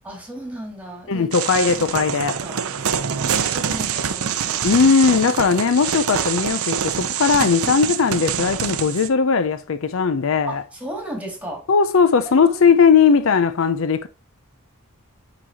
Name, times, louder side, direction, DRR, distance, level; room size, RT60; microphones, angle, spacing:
voice 1, 0.0-1.3 1.8-1.9 2.4-2.6 3.2-4.6 10.5-11.6 12.3-12.5, right 1 dB, 5° right, 2.1 m, -35 dB
voice 2, 1.1-2.4 4.6-10.6 11.7-14.1, left 5 dB, 65° left, 0.5 m, -18 dB
sound 1, 1.3-9.1, right 8 dB, 85° right, 0.6 m, -25 dB
9.5 x 4.0 x 2.8 m
head